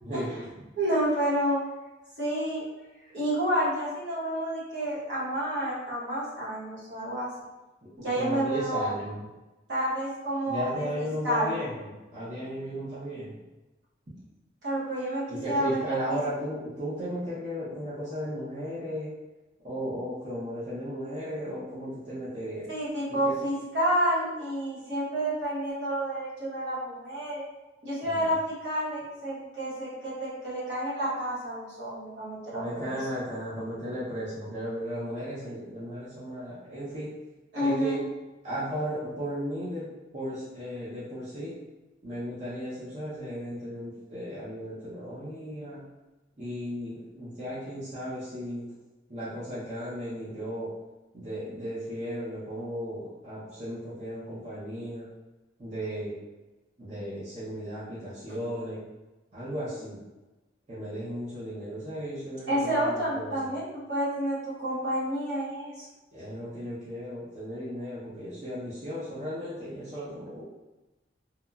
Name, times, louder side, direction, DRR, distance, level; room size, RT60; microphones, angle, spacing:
voice 1, 0.0-0.5 7.8-7.9 8.2-9.3 10.5-13.3 15.3-19.1 19.6-22.6 23.1-23.3 28.0-28.3 32.5-37.1 37.6-38.0 38.4-41.5 42.0-45.9 46.4-48.7 49.1-50.7 51.1-55.1 55.6-56.2 56.8-58.8 59.3-60.0 60.7-63.5 66.1-70.4, equal, 35° right, -11 dB, 0.7 m, -35 dB
voice 2, 0.8-1.6 2.2-2.6 3.1-7.3 8.0-8.9 9.7-11.5 14.6-16.2 22.7-27.4 27.8-33.0 37.5-38.0 62.5-65.9, right 1 dB, 65° right, -8 dB, 1.0 m, -29 dB
2.9 x 2.2 x 2.3 m, 1.1 s
head